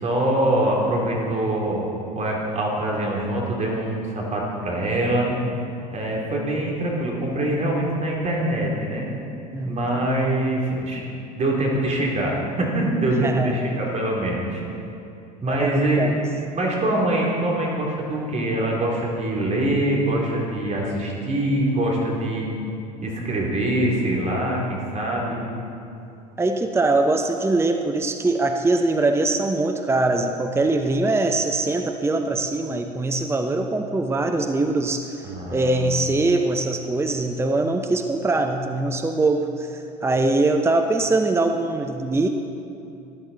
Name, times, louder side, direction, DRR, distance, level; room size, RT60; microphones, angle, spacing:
voice 1, 0.0-5.3 5.9-9.1 9.6-11.1 11.3-14.6 15.4-16.2 16.5-22.5 23.0-25.4 35.2-35.9, right 1 dB, 30° right, -3 dB, 3.0 m, -24 dB
voice 2, 9.5-9.9 13.1-13.6 15.4-16.2 26.4-35.2 35.5-42.3, right 2 dB, 10° right, 5 dB, 0.8 m, -22 dB
13.0 x 12.5 x 4.0 m, 2.7 s
hypercardioid pair, 70°, 21 cm